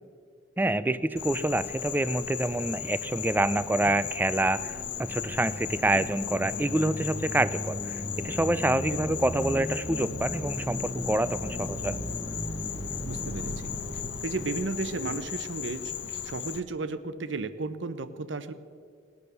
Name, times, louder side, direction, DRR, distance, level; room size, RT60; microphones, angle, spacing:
voice 1, 0.6-12.0, right 1 dB, 10° right, 15 dB, 0.4 m, -27 dB
Insect, 1.2-16.6, left 10 dB, 65° left, 0.7 m, -37 dB
sound 1, 4.6-15.2, equal, 35° right, 0.9 m, -43 dB
sound 2, 5.4-14.2, equal, 25° left, 1.0 m, -37 dB
voice 2, 13.0-13.7 14.2-18.5, right 3 dB, 90° right, 12 dB, 0.8 m, -34 dB
18.5 x 9.6 x 6.7 m, 2.3 s
head